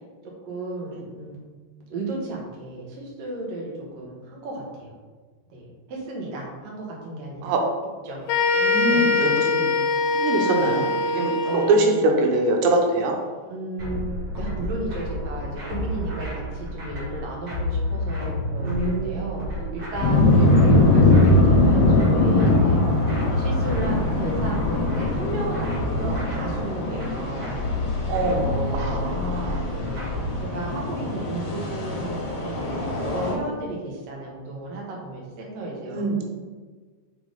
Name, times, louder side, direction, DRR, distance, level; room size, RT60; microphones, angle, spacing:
voice 1, 0.5-1.4 1.9-4.9 5.5-7.5 8.0-8.3 8.9-9.4 10.0-10.9 11.4-12.2 13.5-22.8 23.2-27.6 28.3-29.3 29.7-30.0 30.4-36.3, right 2 dB, 60° right, -3 dB, 1.8 m, -34 dB
sound 1, 8.3-11.9, left 3 dB, 80° left, 2.4 m, -23 dB
voice 2, 8.6-9.7 10.1-11.9 12.2-13.1 18.6-19.7 28.1-29.6 35.9-36.3, right 2 dB, 90° right, 2 dB, 3.2 m, -24 dB
sound 2, 13.8-30.4, left 2 dB, 45° right, 1.8 m, -30 dB
sound 3, 20.0-33.3, left 2 dB, 60° left, 2.0 m, -22 dB
5.7 x 5.4 x 3.8 m, 1.4 s
omnidirectional pair, 4.9 m